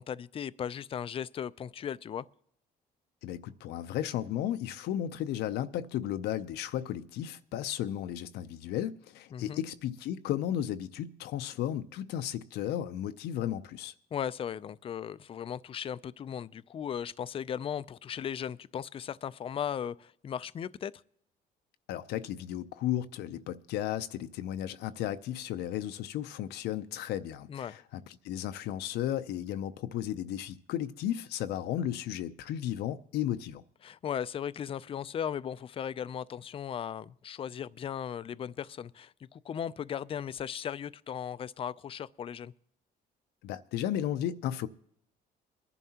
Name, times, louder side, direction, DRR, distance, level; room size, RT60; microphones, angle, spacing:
voice 1, 0.0-2.3 9.3-9.6 14.1-20.9 27.5-27.8 33.8-42.5, left 8 dB, 35° left, 0.4 m, -37 dB
voice 2, 3.2-13.9 21.9-33.6 43.4-44.7, left 11 dB, 80° left, 0.6 m, -34 dB
22.5 x 11.0 x 2.9 m
cardioid pair, 110°, 17 cm